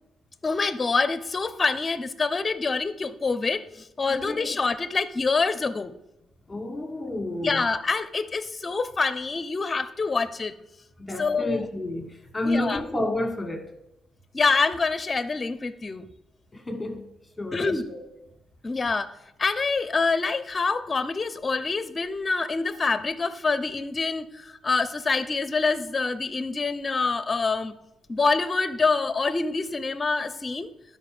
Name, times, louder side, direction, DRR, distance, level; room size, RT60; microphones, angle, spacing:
voice 1, 0.4-5.9 7.4-10.5 11.2-11.6 12.4-12.8 14.3-16.1 17.5-17.9 18.6-19.1 19.4-27.7 28.1-30.7, left 4 dB, 30° left, 0.7 m, -26 dB
voice 2, 4.1-4.6 6.5-7.6 11.0-13.7 16.5-17.1 17.4-18.0, left 1 dB, 15° left, 1.8 m, -30 dB
12.0 x 5.5 x 5.1 m
cardioid pair, 90°, 0 cm